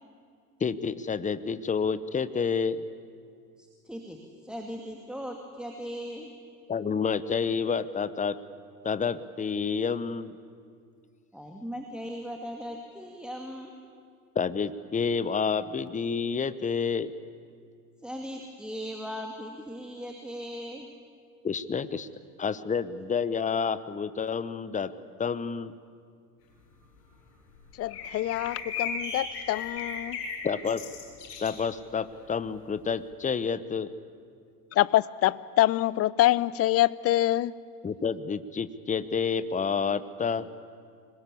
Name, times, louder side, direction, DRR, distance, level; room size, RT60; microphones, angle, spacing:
voice 1, 0.6-2.8 6.7-8.4 8.8-10.3 14.3-17.1 21.4-22.1 22.4-24.9 25.2-25.8 30.4-30.8 31.4-33.9 37.8-40.5, left 6 dB, 15° left, 1.0 m, -29 dB
voice 2, 3.6-4.2 4.4-6.3 11.3-13.7 18.0-20.9, equal, ahead, 2.5 m, -38 dB
sound 1, 27.0-27.1 27.5-31.7 32.0-32.1 32.3-32.8, left 5 dB, 70° left, 7.4 m, -37 dB
voice 3, 27.8-30.2 34.7-37.5, left 14 dB, 30° left, 0.6 m, -25 dB
25.0 x 21.0 x 8.6 m
hypercardioid pair, 80°, 47 cm